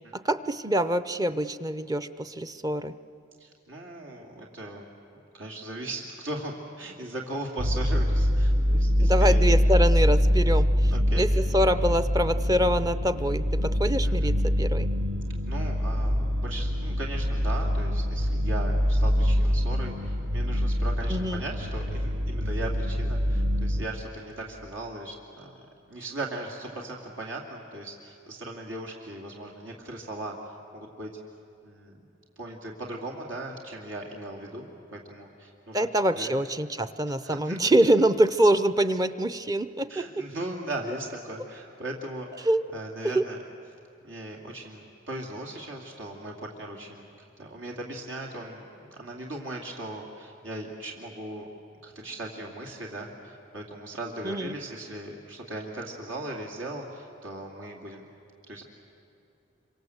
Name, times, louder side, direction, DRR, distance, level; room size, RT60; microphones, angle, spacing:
voice 1, 0.1-2.9 9.0-14.9 21.1-21.4 35.7-40.2 42.4-42.6 43.0-43.2 54.2-54.5, right 1 dB, 20° right, 12 dB, 0.6 m, -25 dB
voice 2, 3.4-4.9 5.3-9.4 10.9-11.3 14.0-14.3 15.5-25.6 25.9-31.1 31.6-32.0 32.4-35.9 36.1-36.4 37.2-37.6 39.9-43.4 44.0-47.1 47.4-51.5 51.8-58.1 58.5-58.6, right 1 dB, 80° right, 0 dB, 2.6 m, -38 dB
sound 1, 7.6-23.9, equal, 60° right, 1.3 m, -24 dB
27.0 x 25.0 x 7.9 m, 2.7 s
head